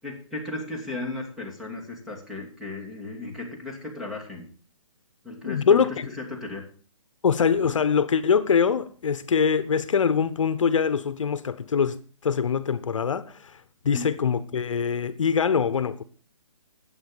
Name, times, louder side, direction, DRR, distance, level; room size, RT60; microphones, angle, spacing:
voice 1, 0.0-4.5 5.2-5.9 6.2-6.7 13.9-14.1, left 2 dB, ahead, 2.7 m, -35 dB
voice 2, 5.4-6.1 7.2-12.0 12.2-16.0, left 6 dB, 70° left, 1.0 m, -23 dB
11.5 x 8.3 x 6.9 m
hypercardioid pair, 155°, 17 cm